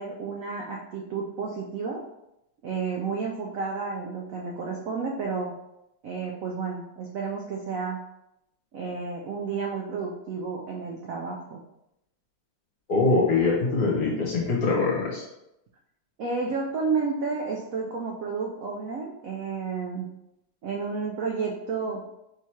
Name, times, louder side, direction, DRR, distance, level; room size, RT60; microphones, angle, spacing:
voice 1, 0.0-2.0 2.6-5.5 6.0-8.1 8.7-11.6 16.2-20.1 20.6-22.1, right 5 dB, 75° right, 0 dB, 0.7 m, -31 dB
voice 2, 12.9-15.2, left 3 dB, 55° left, -3 dB, 1.4 m, -23 dB
3.6 x 2.9 x 4.5 m, 0.86 s
omnidirectional pair, 2.0 m